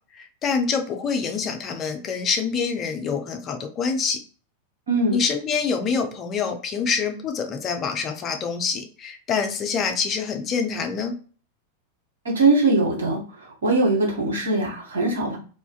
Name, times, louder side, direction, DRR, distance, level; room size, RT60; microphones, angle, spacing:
voice 1, 0.1-4.2 5.1-11.1, left 5 dB, 30° left, 5 dB, 0.4 m, -26 dB
voice 2, 4.9-5.2 12.2-13.2 13.6-15.4, right 2 dB, 65° right, -2 dB, 0.9 m, -21 dB
2.4 x 2.4 x 2.2 m, 0.40 s
figure-of-eight pair, 90°, 0 cm